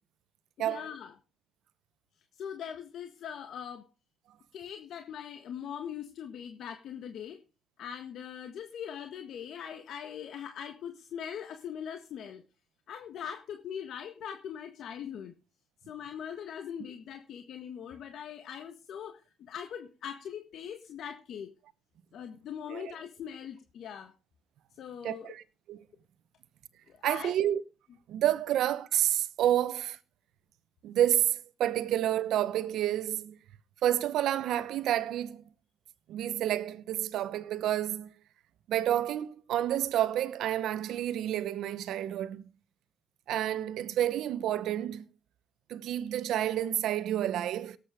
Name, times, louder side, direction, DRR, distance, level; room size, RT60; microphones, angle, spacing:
voice 1, 0.6-1.1 2.4-3.9 4.5-7.4 7.8-12.4 12.9-15.3 15.8-21.5 22.1-24.1 24.7-25.3 26.9-27.3, left 8 dB, 70° left, 1.5 m, -41 dB
voice 2, 25.0-25.4 25.7-25.8 27.0-27.6 28.1-30.0 30.8-33.4 33.8-35.4 36.1-38.1 38.7-42.5 43.3-45.1 45.7-47.8, right 12 dB, 80° right, 1.0 m, -29 dB
17.5 x 8.5 x 5.0 m
cardioid pair, 90°, 0 cm